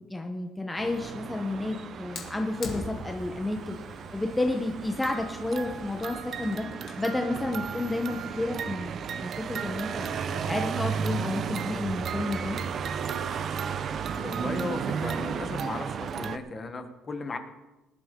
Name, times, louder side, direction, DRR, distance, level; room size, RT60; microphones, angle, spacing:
voice 1, 0.0-3.8 4.1-6.7 7.0-8.9 9.2-12.6, left 2 dB, 10° left, 3 dB, 1.0 m, -31 dB
sound 1, 0.8-16.4, right 7 dB, 45° right, 0.7 m, -34 dB
Fire, 2.1-7.1, left 3 dB, 50° left, 2.5 m, -44 dB
voice 2, 14.2-17.4, left 3 dB, 30° left, 7 dB, 1.3 m, -36 dB
19.5 x 12.0 x 3.8 m, 1.1 s
cardioid pair, 140°, 0 cm